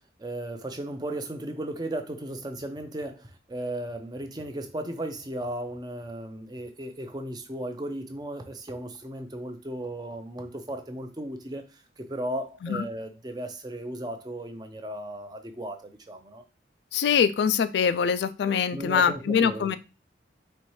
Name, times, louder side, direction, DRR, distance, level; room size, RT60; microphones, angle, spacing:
voice 1, 0.0-16.4 18.7-19.8, right 1 dB, 20° right, 0.5 m, -36 dB
voice 2, 16.9-19.8, left 7 dB, 65° left, 0.3 m, -23 dB
4.3 x 3.1 x 3.1 m
head